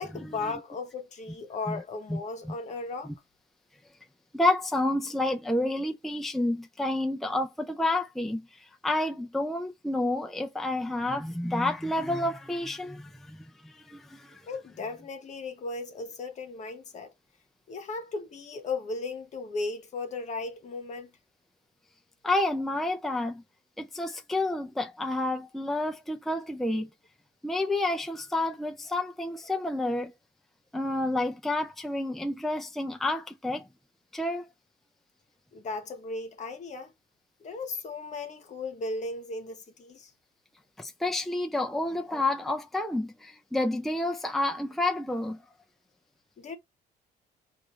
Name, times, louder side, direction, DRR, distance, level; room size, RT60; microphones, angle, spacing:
voice 1, 0.0-3.1 14.5-17.1 17.7-21.1 35.5-36.9 37.4-40.1 46.4-46.6, left 3 dB, 45° left, 1.2 m, -36 dB
voice 2, 4.3-14.4 22.2-23.4 23.8-26.9 27.4-30.1 30.7-33.7 34.1-34.5 40.8-45.4, left 2 dB, ahead, 0.5 m, -29 dB
4.7 x 2.6 x 4.0 m
cardioid pair, 110°, 17 cm